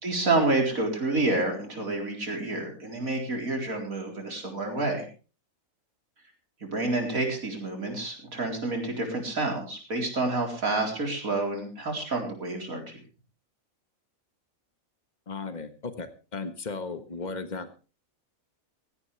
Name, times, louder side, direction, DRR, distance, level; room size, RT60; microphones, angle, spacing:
voice 1, 0.0-5.1 6.6-13.0, right 2 dB, 75° right, 2 dB, 4.6 m, -29 dB
voice 2, 15.3-17.8, left 4 dB, 30° left, 9 dB, 1.6 m, -36 dB
17.0 x 16.0 x 3.4 m, 0.34 s
omnidirectional pair, 1.5 m